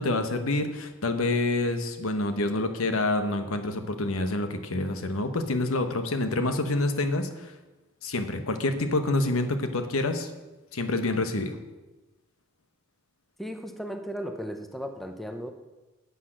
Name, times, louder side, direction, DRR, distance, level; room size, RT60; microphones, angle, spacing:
voice 1, 0.0-7.5 8.0-10.3 10.7-11.6, left 2 dB, 85° left, 8 dB, 1.1 m, -27 dB
voice 2, 13.4-15.5, equal, ahead, 5 dB, 0.8 m, -36 dB
10.0 x 8.4 x 6.3 m, 1.1 s
head